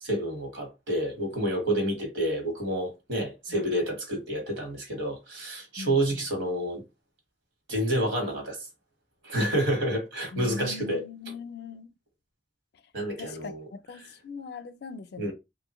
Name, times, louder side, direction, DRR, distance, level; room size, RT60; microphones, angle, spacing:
voice 1, 0.0-6.8 7.7-8.6 9.2-11.0 12.9-13.6 15.2-15.3, right 1 dB, 85° right, 1.4 m, -29 dB
voice 2, 5.8-6.3 10.3-11.9 13.2-15.3, left 4 dB, 60° left, 0.4 m, -41 dB
3.0 x 2.5 x 2.9 m
head